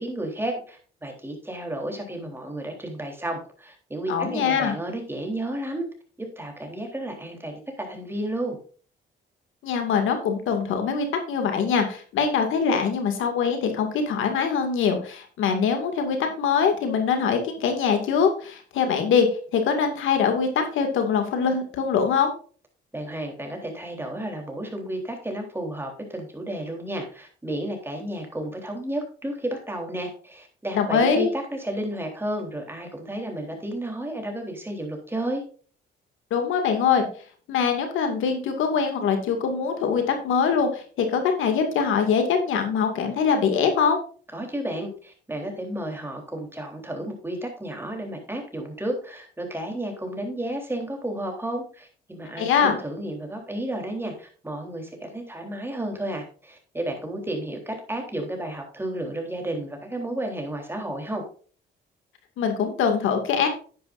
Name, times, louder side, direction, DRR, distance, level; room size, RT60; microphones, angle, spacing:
voice 1, 0.0-5.9 6.2-8.6 22.9-35.4 44.3-61.2, right 1 dB, 10° right, 2 dB, 3.5 m, -32 dB
voice 2, 4.1-4.7 9.6-19.3 19.5-22.3 30.7-31.3 36.3-37.1 37.5-44.0 52.4-52.8 62.4-63.5, left 6 dB, 85° left, 5 dB, 2.2 m, -23 dB
10.5 x 9.7 x 2.6 m, 0.40 s
cardioid pair, 90°, 20 cm